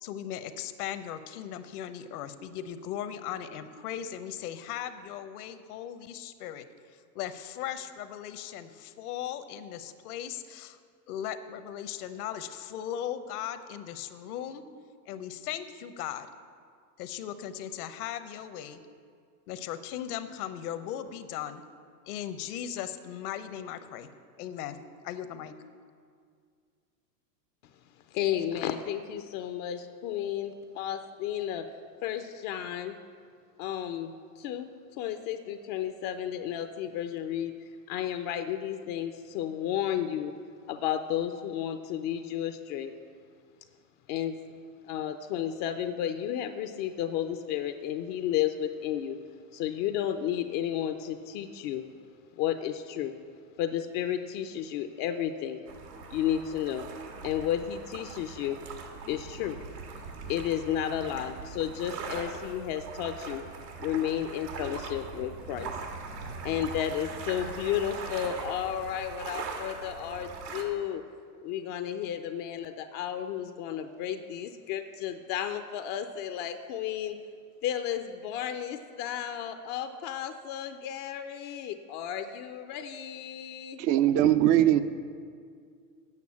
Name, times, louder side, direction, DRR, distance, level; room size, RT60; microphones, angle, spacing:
voice 1, 0.0-6.6 7.1-10.8 11.1-14.7 15.1-16.3 17.0-18.8 19.5-21.6 22.1-24.1 24.4-24.8 25.0-25.5, left 10 dB, 65° left, 11 dB, 0.9 m, -38 dB
voice 2, 27.6-33.0 33.6-40.4 40.7-42.9 44.1-44.4 44.8-51.9 52.4-53.2 53.6-55.6 56.1-56.9 57.2-58.6 58.9-59.6 59.9-63.5 63.8-66.1 66.4-71.0 71.4-77.2 77.6-83.8, left 10 dB, 40° left, 9 dB, 0.5 m, -33 dB
sound 1, 55.7-70.6, right 4 dB, 85° right, 1.9 m, -41 dB
voice 3, 83.8-84.8, right 12 dB, 30° right, 12 dB, 0.4 m, -21 dB
8.5 x 6.6 x 8.4 m, 2.1 s
hypercardioid pair, 115°, 48 cm